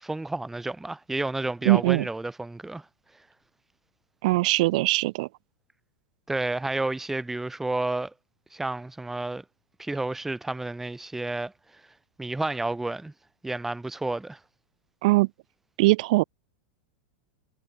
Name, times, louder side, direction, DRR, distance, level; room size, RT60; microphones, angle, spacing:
voice 1, 0.0-2.9 6.3-8.1 8.5-9.4 9.8-11.5 12.2-13.1 13.4-14.4, right 2 dB, 5° right, 0.5 m, -31 dB
voice 2, 1.7-2.1 4.2-5.3 15.0-15.3 15.8-16.2, right 21 dB, 60° right, 0.5 m, -21 dB
hypercardioid pair, 105°, 5 cm